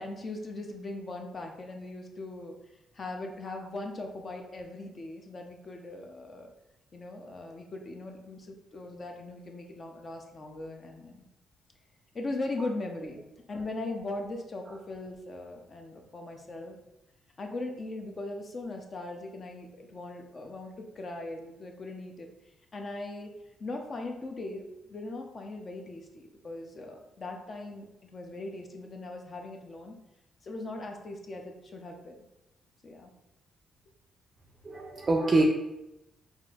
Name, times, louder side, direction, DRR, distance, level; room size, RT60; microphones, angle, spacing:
voice 1, 0.0-2.6 2.9-6.5 6.9-11.2 12.1-13.2 13.5-16.8 17.4-22.3 22.7-23.3 23.6-30.0 30.4-32.2 32.8-33.1, left 2 dB, 40° left, 3 dB, 0.5 m, -39 dB
voice 2, 34.6-35.4, right 2 dB, 35° right, 1 dB, 0.4 m, -25 dB
4.2 x 2.5 x 2.4 m, 0.91 s
cardioid pair, 90°, 0 cm